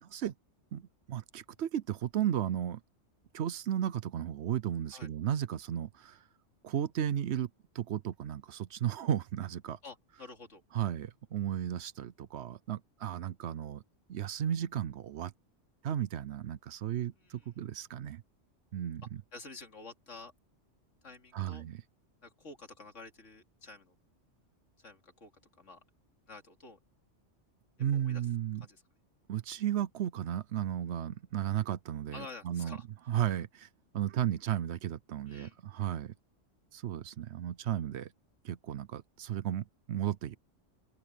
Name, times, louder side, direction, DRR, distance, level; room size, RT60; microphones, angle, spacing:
voice 1, 0.0-0.3 0.7-2.8 3.3-6.2 6.6-7.5 7.7-9.8 10.7-13.8 14.1-15.3 15.8-18.2 18.7-19.2 21.3-21.8 27.8-28.6 29.3-32.8 33.1-33.7 33.9-36.1 36.7-38.1 38.4-40.4, right 10 dB, 65° right, 0.9 m, -34 dB
voice 2, 9.8-10.6 17.1-17.5 19.3-20.3 21.0-21.6 22.2-23.9 24.8-25.3 25.6-25.8 26.3-26.8 27.9-28.2 28.6-28.8 32.1-32.8 35.3-35.6, left 3 dB, 80° left, 3.0 m, -49 dB
open air
omnidirectional pair, 1.3 m